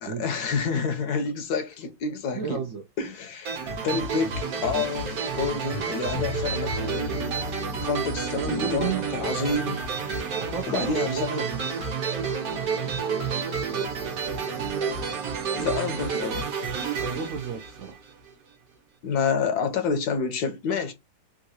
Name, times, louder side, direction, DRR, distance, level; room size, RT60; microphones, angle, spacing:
voice 1, 0.0-2.6 3.0-7.3 7.8-9.8 10.7-11.5 15.5-16.5 19.0-20.9, left 5 dB, 70° left, 1.1 m, -29 dB
voice 2, 2.3-2.8 8.3-9.8 10.3-11.6 17.0-18.0, right 6 dB, 75° right, 0.7 m, -33 dB
sound 1, 3.5-18.3, right 5 dB, 60° right, 1.3 m, -30 dB
sound 2, 6.1-11.2, left 6 dB, 85° left, 1.3 m, -39 dB
3.7 x 2.3 x 2.6 m
omnidirectional pair, 1.9 m